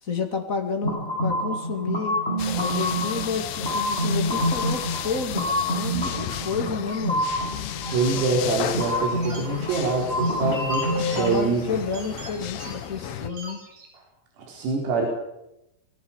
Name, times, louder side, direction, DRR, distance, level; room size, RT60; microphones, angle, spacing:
voice 1, 0.0-2.2 2.6-7.3 10.9-13.6, left 4 dB, 40° left, 4 dB, 1.2 m, -30 dB
sound 1, 0.8-11.3, equal, 10° left, 7.3 m, -27 dB
sound 2, 2.4-13.3, left 11 dB, 70° left, 2.6 m, -34 dB
sound 3, 7.9-13.9, right 3 dB, 45° right, 6.6 m, -44 dB
voice 2, 7.9-11.6 14.4-15.1, right 3 dB, 80° right, -1 dB, 6.9 m, -25 dB
27.0 x 18.5 x 7.3 m, 0.85 s
omnidirectional pair, 5.9 m